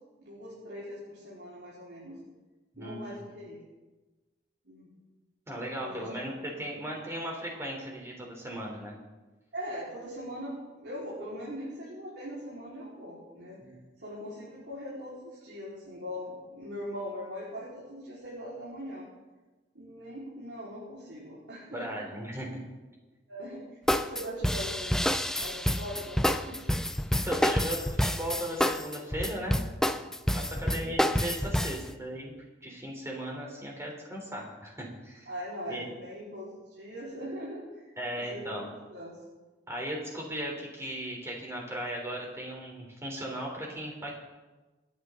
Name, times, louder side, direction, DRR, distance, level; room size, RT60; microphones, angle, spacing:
voice 1, 0.2-2.2 2.8-3.6 4.6-4.9 5.8-6.2 9.5-10.5 10.8-13.6 14.0-19.1 19.7-22.1 23.3-26.8 30.3-31.0 35.3-37.8 38.2-38.6 38.9-39.2, equal, 80° right, -8 dB, 4.6 m, -41 dB
voice 2, 2.7-3.2 5.5-9.0 13.6-13.7 21.7-22.6 27.2-29.6 30.3-32.3 32.6-35.3 35.7-35.9 38.0-38.7 39.7-44.1, right 1 dB, 15° right, -1 dB, 3.6 m, -37 dB
sound 1, 23.9-31.9, equal, 5° left, 0.5 m, -28 dB
28.0 x 9.4 x 3.9 m, 1.2 s
head